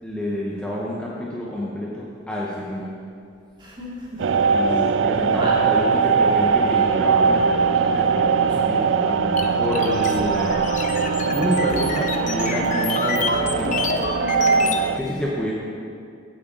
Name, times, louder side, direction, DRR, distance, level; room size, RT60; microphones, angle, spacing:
voice 1, 0.0-2.9 4.5-8.9 9.6-10.6 11.3-13.8 14.9-15.5, left 1 dB, 5° left, -6 dB, 1.1 m, -28 dB
voice 2, 3.6-4.3 5.4-5.6 8.6-9.6 14.1-15.2, equal, 25° right, -6 dB, 2.6 m, -33 dB
sound 1, 4.2-15.0, right 5 dB, 90° right, 0.4 m, -21 dB
sound 2, 6.3-13.2, equal, 65° left, 1.3 m, -44 dB
sound 3, 9.4-14.9, left 4 dB, 40° left, 0.7 m, -28 dB
16.0 x 8.9 x 3.9 m, 2.4 s
head